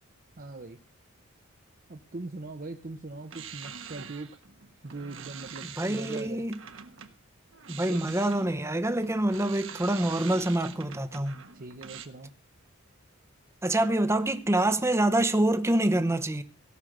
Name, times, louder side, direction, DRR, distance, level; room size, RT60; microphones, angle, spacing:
voice 1, 0.4-0.8 1.9-4.3 4.8-6.4 7.9-8.1 11.5-12.3, right 2 dB, 45° right, 0.8 m, -41 dB
sound 1, 3.2-7.1 7.5-12.1, right 7 dB, 65° right, 1.3 m, -44 dB
voice 2, 5.8-6.5 7.7-11.4 13.6-16.4, right 1 dB, 15° right, 0.8 m, -26 dB
17.0 x 6.4 x 6.5 m
head